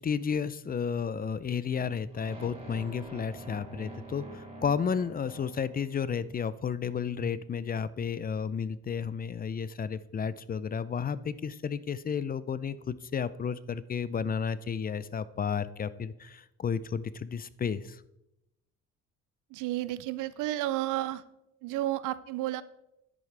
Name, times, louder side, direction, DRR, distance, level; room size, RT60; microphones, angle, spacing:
voice 1, 0.0-18.0, left 6 dB, 30° left, 17 dB, 0.4 m, -32 dB
sound 1, 2.1-6.2, right 2 dB, 20° right, 3.2 m, -46 dB
voice 2, 19.5-21.2 21.6-22.6, right 15 dB, 90° right, 16 dB, 0.5 m, -31 dB
9.9 x 8.6 x 3.3 m, 0.88 s
cardioid pair, 90°, 30 cm